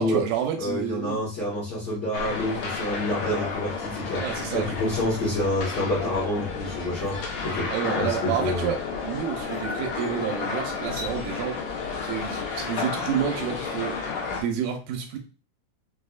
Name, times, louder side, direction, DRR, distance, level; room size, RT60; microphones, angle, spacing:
voice 1, 0.0-1.2 4.2-4.7 7.7-11.6 12.0-15.2, right 8 dB, 90° right, 2.1 m, -29 dB
voice 2, 0.6-7.7 7.9-8.7, left 1 dB, 70° left, 0.9 m, -28 dB
sound 1, 2.1-14.4, left 5 dB, 90° left, 1.3 m, -32 dB
sound 2, 6.2-6.3 6.7-7.1 8.8-8.9 9.4-9.7 10.8-11.1, left 2 dB, 60° right, 0.8 m, -42 dB
5.1 x 2.0 x 2.3 m
omnidirectional pair, 3.7 m